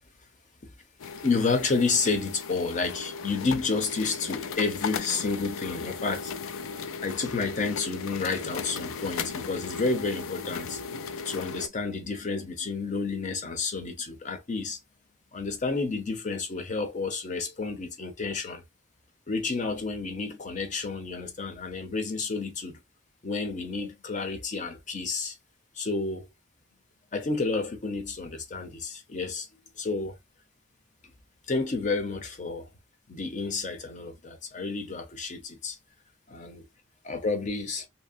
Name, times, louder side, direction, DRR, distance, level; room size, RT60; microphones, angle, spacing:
sound 1, 1.0-11.7, left 5 dB, 90° left, 0.4 m, -36 dB
voice 1, 1.2-6.3 7.0-10.8 11.2-14.8 15.3-18.6 19.3-22.8 23.2-25.4 25.7-26.3 27.1-29.5 29.8-30.2 31.5-32.7 33.1-35.8 36.3-36.7 37.0-37.9, left 4 dB, 40° left, 0.6 m, -30 dB
2.8 x 2.0 x 2.5 m
head